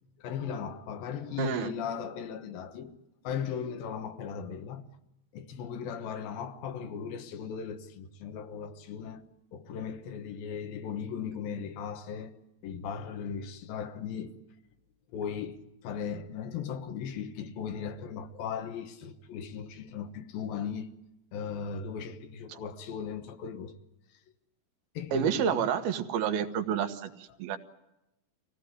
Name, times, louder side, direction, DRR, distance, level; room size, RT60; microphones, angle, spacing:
voice 1, 0.2-2.9 3.2-4.9 5.3-9.2 9.5-12.3 12.6-14.4 15.1-20.9 21.3-23.8 24.9-25.7, left 7 dB, 75° left, 3.0 m, -37 dB
voice 2, 1.4-1.7 22.5-22.6 25.1-27.6, right 8 dB, 80° right, 3.1 m, -29 dB
24.5 x 17.0 x 9.6 m
omnidirectional pair, 4.3 m